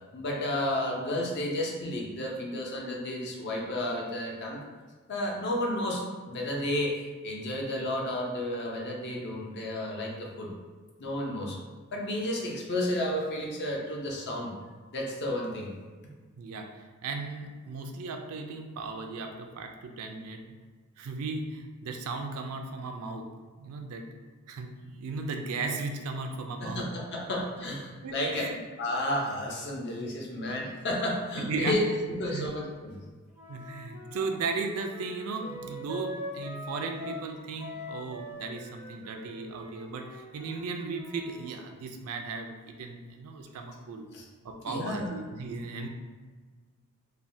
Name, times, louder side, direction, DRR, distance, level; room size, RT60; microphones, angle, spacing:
voice 1, 0.1-4.6 5.1-10.5 11.0-11.6 11.9-14.5 14.9-15.7 26.6-28.5 28.8-31.8 32.2-32.9 44.1-44.3 44.6-45.1, left 1 dB, 50° left, -2 dB, 0.6 m, -32 dB
voice 2, 16.4-20.4 21.0-23.2 23.6-24.0 24.5-26.9 28.0-28.6 30.4-30.6 31.4-31.8 32.3-32.5 33.5-44.0 44.4-45.9, right 4 dB, 70° right, 4 dB, 0.3 m, -36 dB
Wind instrument woodwind instrument, 33.3-37.3 37.6-41.5, left 1 dB, 10° right, 0.4 m, -43 dB
3.3 x 2.1 x 2.6 m, 1.4 s
head